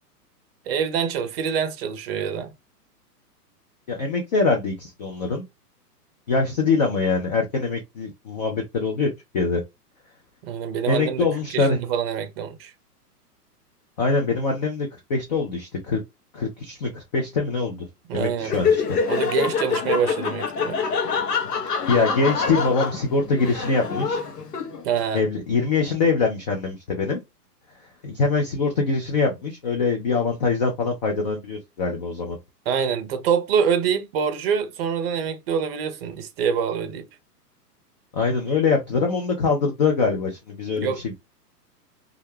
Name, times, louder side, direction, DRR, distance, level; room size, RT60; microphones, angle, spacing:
voice 1, 0.7-2.5 10.4-11.3 11.5-12.7 18.1-18.5 19.1-20.8 24.8-25.2 32.7-37.1 40.8-41.0, right 7 dB, 40° right, 0.6 m, -25 dB
voice 2, 3.9-5.4 6.3-9.6 10.9-11.8 14.0-16.0 16.3-17.9 18.1-19.0 21.6-24.2 25.1-27.2 28.0-32.4 38.1-41.1, left 4 dB, 30° left, 0.4 m, -23 dB
Laughter, 18.4-25.0, left 5 dB, 75° left, 0.8 m, -25 dB
2.4 x 2.0 x 3.1 m
hypercardioid pair, 120°, 48 cm